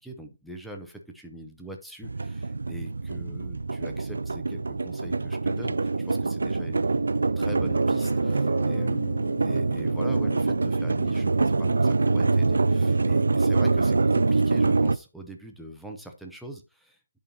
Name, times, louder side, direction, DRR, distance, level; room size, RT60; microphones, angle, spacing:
voice 1, 0.0-7.1 7.4-17.0, right 1 dB, ahead, 2 dB, 0.5 m, -42 dB
sound 1, 2.0-15.0, right 3 dB, 85° right, 0.4 m, -24 dB
sound 2, 6.9-14.7, left 6 dB, 15° left, 1.9 m, -46 dB
10.5 x 3.7 x 2.8 m, 0.31 s
hypercardioid pair, 175°, 0 cm